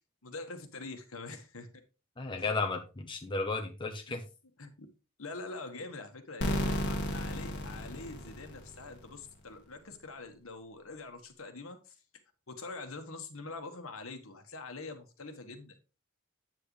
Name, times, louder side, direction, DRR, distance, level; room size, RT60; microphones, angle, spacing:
voice 1, 0.2-1.7 2.4-2.5 4.1-4.2 4.6-4.9 5.2-12.0 12.5-15.8, left 3 dB, 70° left, 7 dB, 1.4 m, -44 dB
voice 2, 2.2-4.2, left 3 dB, 20° left, 2 dB, 0.9 m, -34 dB
sound 1, 6.4-9.1, left 1 dB, 55° left, 1.6 m, -34 dB
8.6 x 7.7 x 3.2 m, 0.31 s
head